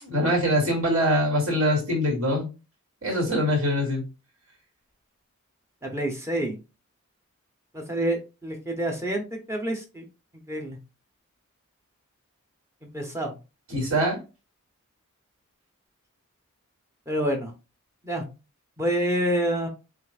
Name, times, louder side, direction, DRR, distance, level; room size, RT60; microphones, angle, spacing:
voice 1, 0.0-2.5 3.0-4.0 13.7-14.2, equal, 65° right, -1 dB, 2.3 m, -23 dB
voice 2, 5.8-6.6 7.7-10.1 10.5-10.8 12.9-13.4 17.1-17.5 18.0-18.2 18.8-19.7, right 1 dB, 10° right, 2 dB, 0.7 m, -27 dB
7.5 x 2.5 x 2.4 m, 0.30 s
head